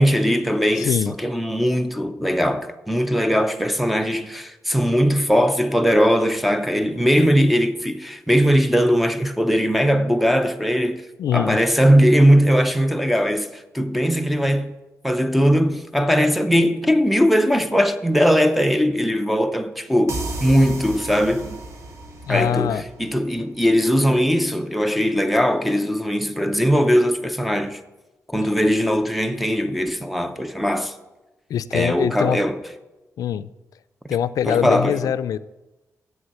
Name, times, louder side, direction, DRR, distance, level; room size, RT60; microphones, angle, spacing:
voice 1, 0.0-11.0 11.3-14.8 15.0-21.6 22.3-27.8 28.3-31.0 31.7-32.6 34.5-35.1, equal, ahead, 0.5 m, -19 dB
voice 2, 0.8-1.1 11.2-11.6 22.3-22.8 31.5-32.4 33.2-33.5 34.1-35.4, left 9 dB, 85° left, 0.3 m, -23 dB
sound 1, 20.1-23.6, right 2 dB, 60° right, 1.6 m, -34 dB
7.6 x 6.4 x 8.0 m
wide cardioid pair, 140°, 6 cm